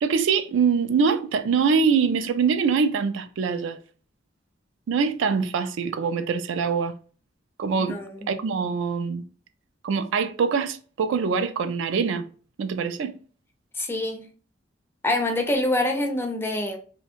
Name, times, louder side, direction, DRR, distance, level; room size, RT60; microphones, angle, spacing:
voice 1, 0.0-3.8 4.9-6.9 7.6-8.0 8.3-9.2 9.8-12.3 12.6-13.1, right 5 dB, 75° right, 0.3 m, -24 dB
voice 2, 7.8-8.3 13.8-14.2 15.0-16.8, left 1 dB, 10° left, 0.4 m, -26 dB
2.6 x 2.1 x 2.9 m
head